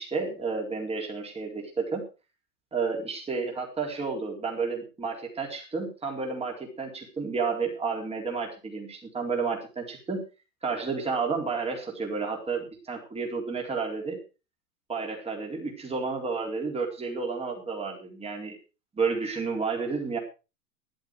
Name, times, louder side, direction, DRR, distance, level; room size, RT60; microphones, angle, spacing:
voice 1, 0.0-2.0 2.7-10.2 10.6-14.2 14.9-18.6 19.0-20.2, right 4 dB, 10° right, 1 dB, 4.1 m, -31 dB
14.0 x 11.5 x 4.7 m, 0.32 s
figure-of-eight pair, 105°, 47 cm